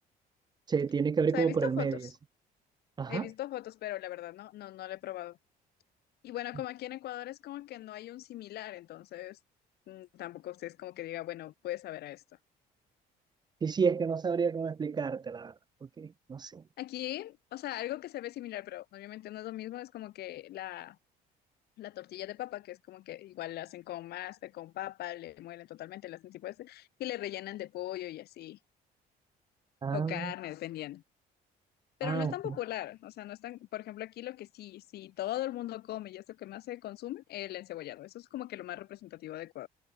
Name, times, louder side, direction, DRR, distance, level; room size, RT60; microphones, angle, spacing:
voice 1, 0.7-2.0 3.0-3.3 13.6-15.5 16.0-16.6 29.8-30.3 32.0-32.3, right 5 dB, 25° right, 0.5 m, -30 dB
voice 2, 1.3-2.1 3.1-5.4 6.2-9.4 9.9-12.2 16.8-21.0 21.8-28.6 29.9-31.0 32.0-39.7, left 15 dB, 70° left, 1.6 m, -40 dB
cardioid pair, 110°, 17 cm